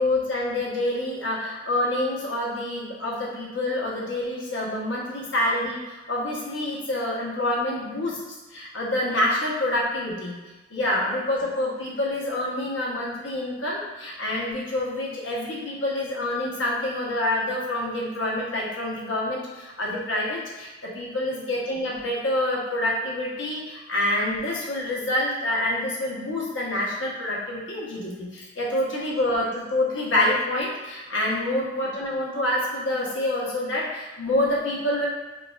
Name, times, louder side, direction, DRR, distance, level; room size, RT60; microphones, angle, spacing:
voice 1, 0.0-8.2 8.5-10.4 10.7-35.1, left 1 dB, 85° left, -4 dB, 0.9 m, -27 dB
4.7 x 2.3 x 2.3 m, 1.1 s
head